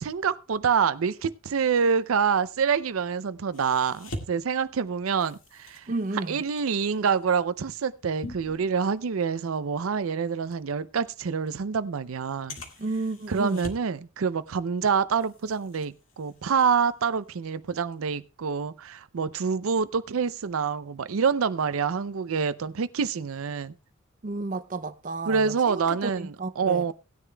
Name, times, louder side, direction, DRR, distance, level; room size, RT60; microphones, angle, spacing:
voice 1, 0.0-5.9 6.3-12.6 13.3-23.7 25.3-26.9, right 6 dB, 85° right, 0.5 m, -26 dB
sound 1, 3.5-9.3 9.7-9.9 10.5-10.6 11.5-11.6 12.5-14.0 14.3-14.8 15.1-17.3 17.7-17.9, left 1 dB, 75° left, 2.0 m, -44 dB
voice 2, 5.9-6.4 12.8-13.7 24.2-26.9, right 3 dB, 40° right, 0.5 m, -32 dB
18.0 x 9.9 x 2.3 m
head